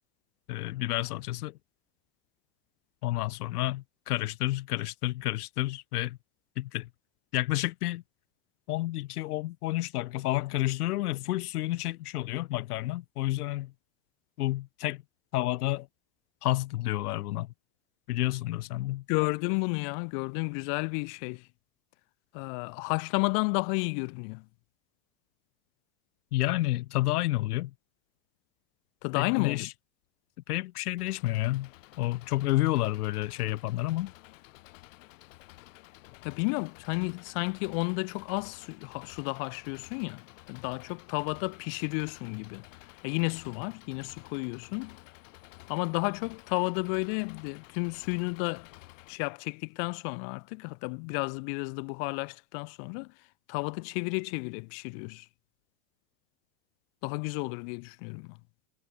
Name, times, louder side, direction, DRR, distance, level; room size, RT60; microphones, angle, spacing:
voice 1, 0.5-1.6 3.0-6.2 6.6-6.9 7.3-8.0 8.7-13.7 14.4-15.0 15.3-15.9 16.4-17.5 18.1-19.0 26.3-27.7 29.1-29.7 30.5-31.7 32.0-34.1, left 17 dB, 85° left, 1.7 m, -30 dB
voice 2, 19.1-21.4 22.3-24.4 29.0-29.7 36.2-42.6 43.0-45.0 45.7-48.7 49.1-53.1 53.5-55.3 57.0-58.4, left 40 dB or more, 40° left, 1.8 m, -32 dB
Engine, 31.0-49.2, left 20 dB, 55° left, 4.8 m, -53 dB
supercardioid pair, 180°, 45 cm